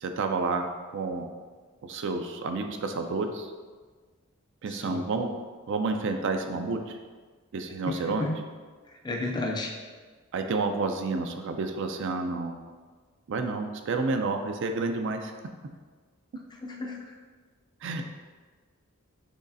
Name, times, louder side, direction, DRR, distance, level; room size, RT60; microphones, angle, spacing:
voice 1, 0.0-1.3 1.8-3.5 4.6-5.3 5.7-6.8 7.5-8.3 10.3-12.6 13.3-15.3 17.8-18.1, right 3 dB, 60° right, 6 dB, 0.4 m, -30 dB
voice 2, 4.7-5.1 7.9-8.4 9.0-9.7 16.6-17.0, left 2 dB, 20° left, 1 dB, 0.4 m, -32 dB
6.4 x 3.1 x 2.6 m, 1.4 s
head